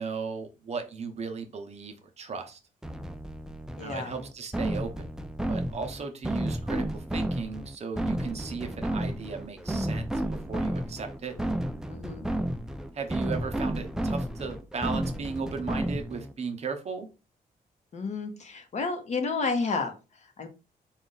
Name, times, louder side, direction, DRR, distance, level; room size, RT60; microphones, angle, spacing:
voice 1, 0.0-2.6 3.8-5.1 5.5-10.1 10.5-11.3 12.9-17.1, right 5 dB, 45° right, 5 dB, 0.7 m, -36 dB
sound 1, 2.8-16.3, right 1 dB, 5° right, 0.3 m, -32 dB
voice 2, 3.8-4.2 11.9-12.3 17.9-20.5, left 4 dB, 50° left, 5 dB, 0.9 m, -31 dB
4.0 x 2.3 x 3.8 m, 0.30 s
cardioid pair, 125°, 15 cm